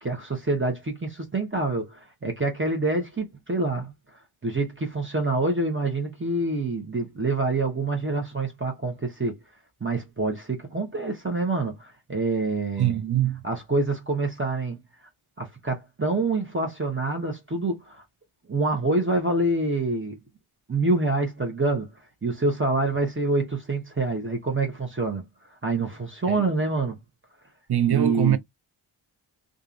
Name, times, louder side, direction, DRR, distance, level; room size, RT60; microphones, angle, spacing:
voice 1, 0.0-3.9 4.4-9.4 9.8-13.0 13.4-14.8 15.4-18.0 18.5-20.2 20.7-21.9 22.2-25.3 25.6-27.0 27.9-28.4, right 2 dB, 25° right, 1.0 m, -26 dB
voice 2, 12.8-13.4 26.3-26.5 27.7-28.4, right 11 dB, 50° right, 0.6 m, -23 dB
2.8 x 2.5 x 2.5 m
cardioid pair, 60°, 49 cm